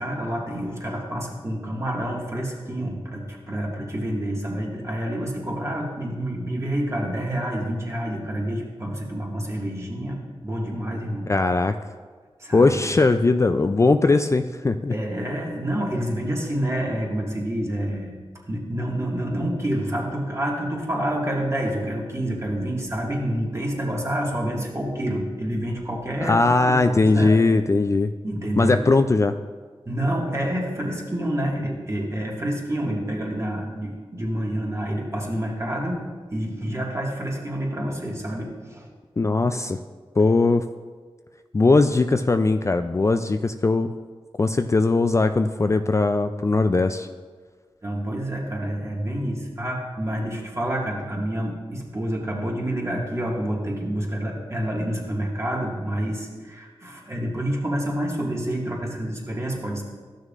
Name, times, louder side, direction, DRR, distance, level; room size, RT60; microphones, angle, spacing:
voice 1, 0.0-11.3 12.4-12.8 14.9-18.2 18.5-27.3 28.2-28.9 29.9-36.0 36.3-38.9 47.8-59.8, right 1 dB, 30° right, -2 dB, 1.9 m, -28 dB
voice 2, 11.3-11.8 12.5-14.9 26.2-28.1 28.6-29.3 39.2-39.8 40.2-40.7 41.5-43.9 44.4-47.1, left 3 dB, 30° left, 8 dB, 0.3 m, -19 dB
12.5 x 6.4 x 2.5 m, 1.5 s
cardioid pair, 40°, 10 cm